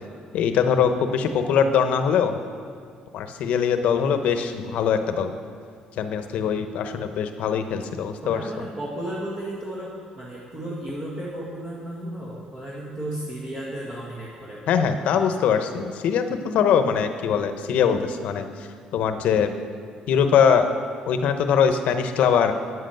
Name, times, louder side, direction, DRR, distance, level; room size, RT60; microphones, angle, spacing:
voice 1, 0.3-2.4 3.1-5.3 6.0-8.4 14.7-19.5 20.1-20.7 21.1-22.5, left 7 dB, 70° left, 8 dB, 0.9 m, -22 dB
voice 2, 8.2-14.7, right 1 dB, 40° right, -6 dB, 2.0 m, -34 dB
9.7 x 7.8 x 7.9 m, 2.3 s
cardioid pair, 120°, 2 cm